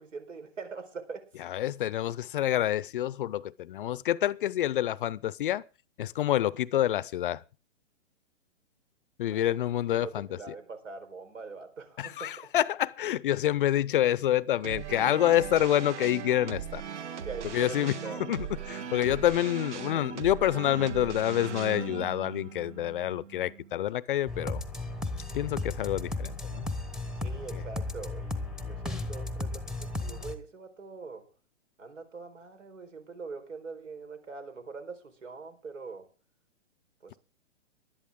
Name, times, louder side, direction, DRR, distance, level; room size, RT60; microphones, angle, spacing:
voice 1, 0.0-1.3 9.3-9.5 9.9-12.5 17.2-18.3 27.2-31.3 31.8-36.1 37.0-37.2, right 4 dB, 85° right, 4.5 m, -43 dB
voice 2, 1.4-5.6 6.0-7.4 9.2-10.5 12.0-16.8 17.4-24.6 25.3-26.7 27.5-27.6, left 12 dB, 45° left, 0.6 m, -28 dB
sound 1, 14.6-23.8, right 8 dB, 70° right, 1.5 m, -39 dB
sound 2, 24.3-30.4, left 2 dB, ahead, 0.8 m, -35 dB
19.5 x 11.5 x 3.7 m
hypercardioid pair, 140°, 37 cm